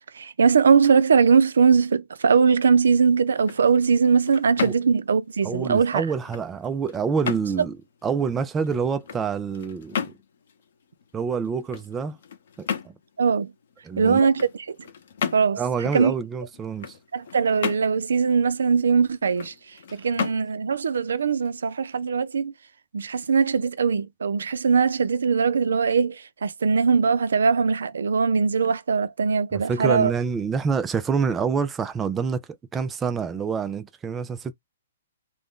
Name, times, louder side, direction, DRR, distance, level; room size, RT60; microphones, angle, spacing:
voice 1, 0.1-6.1 13.2-13.5 14.0-14.8 15.3-16.1 17.1-19.5 19.9-22.5 22.9-30.1, right 5 dB, 90° right, 0.4 m, -21 dB
sound 1, 3.2-22.1, left 7 dB, 60° left, 0.8 m, -36 dB
voice 2, 5.4-7.8 8.0-10.1 11.1-12.2 12.6-12.9 13.8-14.3 15.6-16.9 29.5-32.4 32.7-34.5, right 6 dB, 15° right, 0.3 m, -27 dB
2.5 x 2.1 x 3.6 m
hypercardioid pair, 155°, 0 cm